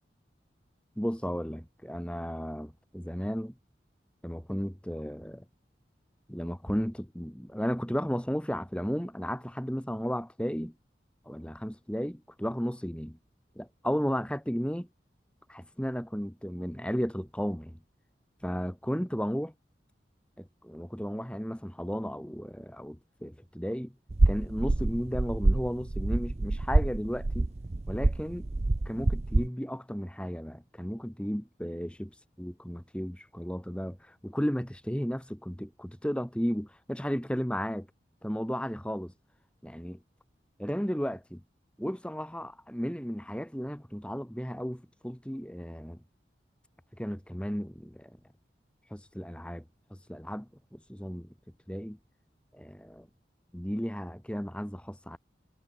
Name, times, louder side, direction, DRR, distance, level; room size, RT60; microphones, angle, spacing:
voice 1, 1.0-3.5 4.2-5.4 6.3-10.7 11.3-13.2 13.6-14.9 15.5-17.8 18.4-19.5 20.4-23.9 24.3-27.5 27.9-28.5 28.9-32.1 32.4-37.9 38.2-39.1 39.6-40.0 40.6-41.4 41.8-46.0 47.0-48.2 48.9-49.6 49.9-51.3 51.7-52.0 52.5-53.1 53.5-55.2, equal, 5° left, 1.8 m, -34 dB
sound 1, 24.1-29.5, right 2 dB, 35° right, 0.6 m, -27 dB
head